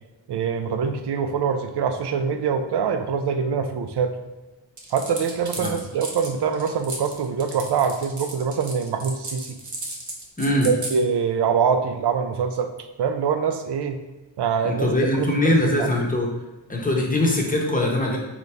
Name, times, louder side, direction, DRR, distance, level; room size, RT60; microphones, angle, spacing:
voice 1, 0.3-4.2 4.9-9.6 10.6-12.7 13.0-14.0 14.4-15.9, right 6 dB, 60° right, 8 dB, 0.5 m, -24 dB
sound 1, 4.8-11.0, right 2 dB, 40° right, 0.9 m, -35 dB
voice 2, 10.4-10.7 14.6-16.3 16.7-18.2, left 1 dB, 20° left, -1 dB, 0.9 m, -22 dB
4.0 x 3.0 x 3.3 m, 1.2 s
cardioid pair, 75°, 46 cm